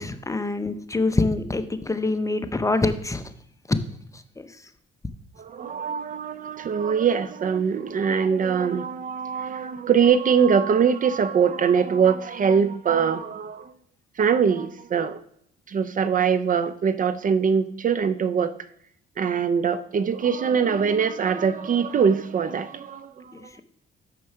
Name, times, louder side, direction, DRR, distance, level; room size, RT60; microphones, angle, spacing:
voice 1, 0.0-3.2 3.7-3.8 4.4-4.5 23.3-23.6, left 2 dB, 15° left, 9 dB, 0.6 m, -25 dB
voice 2, 5.4-13.7 14.2-15.2 15.7-18.5 19.2-23.5, right 6 dB, 40° right, 14 dB, 0.5 m, -22 dB
6.2 x 5.8 x 5.6 m, 0.69 s
cardioid pair, 90°, 20 cm